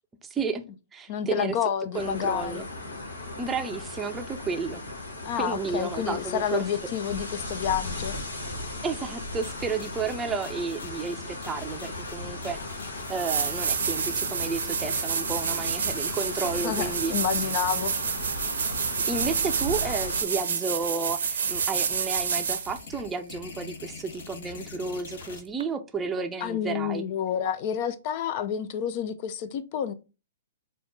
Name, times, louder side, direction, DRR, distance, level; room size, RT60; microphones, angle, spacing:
voice 1, 0.3-0.6 0.9-1.6 1.9-2.6 3.4-4.8 5.3-6.7 8.8-12.8 13.1-17.1 19.1-27.0, right 5 dB, 15° right, 0.5 m, -32 dB
voice 2, 1.1-2.7 5.2-8.2 16.6-18.0 26.4-29.9, left 9 dB, 45° left, 0.4 m, -29 dB
sound 1, 1.9-20.2, left 2 dB, 85° left, 1.6 m, -37 dB
sound 2, 9.4-25.4, left 5 dB, 65° left, 1.1 m, -44 dB
sound 3, 12.6-12.7 13.0-22.8 25.6-25.7, right 6 dB, 70° right, 0.7 m, -29 dB
4.2 x 2.4 x 4.6 m
hypercardioid pair, 120°, 0 cm